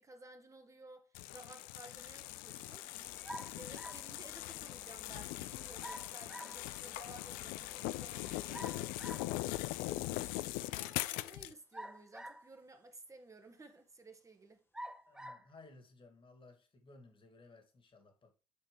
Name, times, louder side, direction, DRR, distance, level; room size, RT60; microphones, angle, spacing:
voice 1, 0.0-2.9 3.4-8.9 10.5-14.6, right 2 dB, 20° right, 1.5 m, -56 dB
sound 1, 1.1-11.5, left 18 dB, 65° left, 0.4 m, -41 dB
sound 2, 1.8-12.8, left 2 dB, 15° left, 1.4 m, -61 dB
sound 3, 3.2-4.1 5.8-6.6 8.5-9.3 11.7-12.6 13.3-13.4 14.7-15.5, equal, 5° right, 0.6 m, -47 dB
voice 2, 15.1-18.3, left 3 dB, 35° left, 2.3 m, -59 dB
8.8 x 4.3 x 3.3 m
hypercardioid pair, 65°, 16 cm